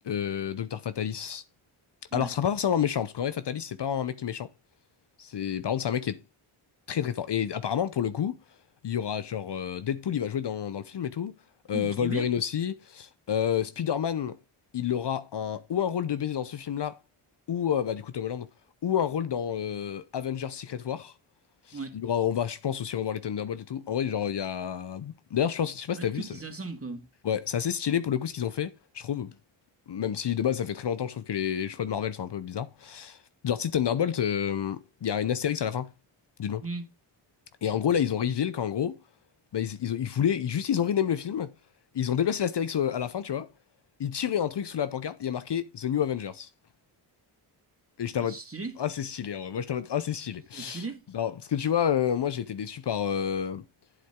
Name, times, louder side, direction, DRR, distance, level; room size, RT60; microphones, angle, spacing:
voice 1, 0.0-1.4 2.1-4.5 5.2-6.2 6.9-8.4 8.8-11.3 11.7-14.4 14.7-17.0 17.5-18.5 18.8-21.1 21.7-26.3 27.2-29.3 29.9-33.2 33.4-35.9 36.4-36.6 37.6-39.0 39.5-41.5 41.9-43.5 44.0-46.5 48.0-48.4 48.8-50.8 51.1-53.6, left 9 dB, 55° left, 0.8 m, -29 dB
voice 2, 11.7-12.3 21.7-22.0 25.9-27.0 36.6-36.8 48.2-48.8 50.5-51.0, right 3 dB, 25° right, 2.4 m, -37 dB
8.9 x 7.5 x 3.7 m
cardioid pair, 60°, 50 cm